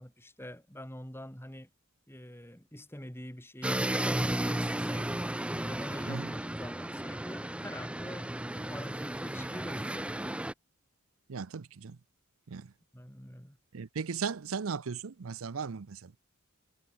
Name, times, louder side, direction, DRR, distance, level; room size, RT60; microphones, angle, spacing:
voice 1, 0.0-1.7 2.1-5.3 5.6-10.4 12.9-13.6, equal, 10° left, 7.2 m, -45 dB
sound 1, 3.6-10.5, right 1 dB, 5° right, 0.5 m, -34 dB
voice 2, 11.3-12.0 12.5-12.7 13.7-16.2, right 5 dB, 80° right, 0.6 m, -37 dB
head